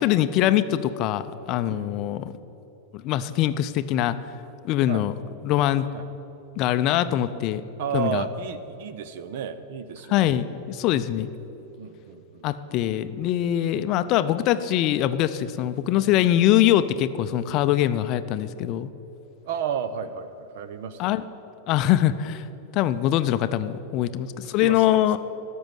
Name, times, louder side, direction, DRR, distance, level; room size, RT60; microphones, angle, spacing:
voice 1, 0.0-2.3 3.0-4.2 4.6-5.1 5.4-5.9 6.6-7.6 7.9-8.2 10.1-11.3 12.4-18.9 21.0-21.2 21.7-22.5 22.7-25.2, left 12 dB, 40° left, 12 dB, 0.5 m, -23 dB
voice 2, 7.8-10.4 10.9-11.0 11.8-12.5 19.5-21.2 24.4-25.2, right 7 dB, 50° right, 13 dB, 0.7 m, -33 dB
14.0 x 6.2 x 9.4 m, 3.0 s
figure-of-eight pair, 90°, 0 cm